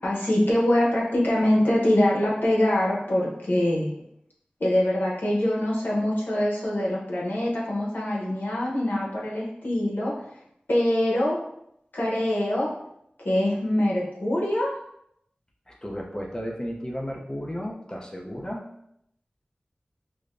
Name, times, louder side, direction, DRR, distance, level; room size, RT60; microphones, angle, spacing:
voice 1, 0.0-3.9 4.6-10.1 10.7-11.4 11.9-12.7 13.2-14.7, left 1 dB, 80° left, -5 dB, 1.0 m, -24 dB
voice 2, 15.7-18.6, equal, 25° left, -1 dB, 0.7 m, -33 dB
4.9 x 2.1 x 2.6 m, 0.76 s
wide cardioid pair, 65°, 3 cm